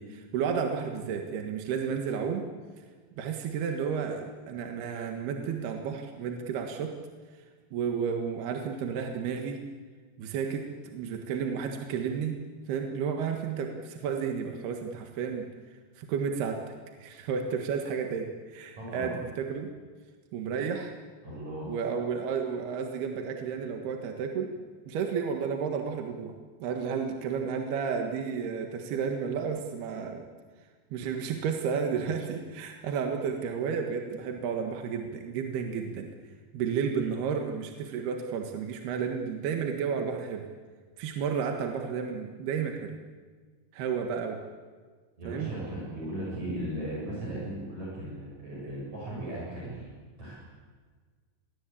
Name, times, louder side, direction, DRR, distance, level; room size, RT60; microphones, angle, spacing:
voice 1, 0.0-2.4 3.2-6.9 7.7-9.6 10.2-10.7 10.9-12.4 12.7-15.5 16.0-16.6 17.0-19.7 20.3-20.9 21.6-24.5 24.9-26.3 26.6-30.3 30.9-36.1 36.5-40.4 41.0-43.0 43.7-44.4 45.3-45.5, right 6 dB, 70° right, 3 dB, 3.5 m, -32 dB
voice 2, 18.8-19.1 21.2-21.7 45.2-49.9 50.2-50.3, right 1 dB, 40° right, -6 dB, 8.2 m, -37 dB
26.5 x 21.0 x 8.5 m, 1.5 s
omnidirectional pair, 5.1 m